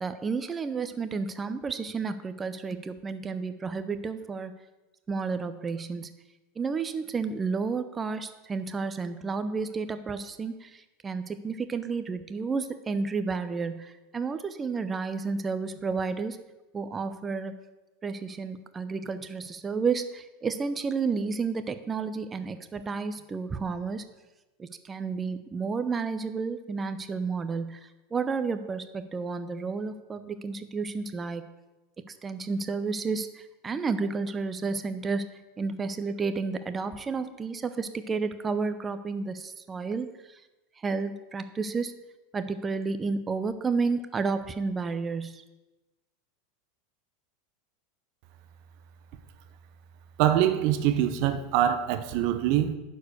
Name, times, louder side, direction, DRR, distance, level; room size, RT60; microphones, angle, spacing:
voice 1, 0.0-4.5 5.1-6.1 6.6-16.4 16.7-17.6 18.0-24.0 24.6-27.8 28.1-31.4 32.1-35.3 35.6-40.4 40.8-41.9 42.3-45.4, right 4 dB, 20° right, 10 dB, 0.8 m, -31 dB
voice 2, 50.2-52.8, right 11 dB, 60° right, 11 dB, 0.9 m, -24 dB
11.5 x 4.7 x 6.4 m, 1.1 s
hypercardioid pair, 95°, 0 cm